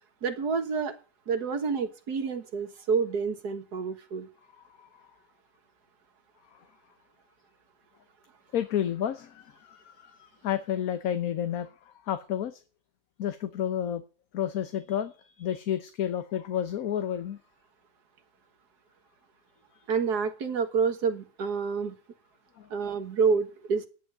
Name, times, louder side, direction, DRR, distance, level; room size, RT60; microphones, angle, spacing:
voice 1, 0.2-0.9 1.3-4.3 19.9-21.9 22.7-23.8, right 5 dB, 80° right, 8 dB, 2.1 m, -28 dB
voice 2, 8.5-10.1 10.4-11.7 12.1-12.6 13.2-14.0 14.3-17.4, left 10 dB, 65° left, 10 dB, 1.3 m, -30 dB
10.5 x 10.0 x 6.5 m, 0.35 s
omnidirectional pair, 1.7 m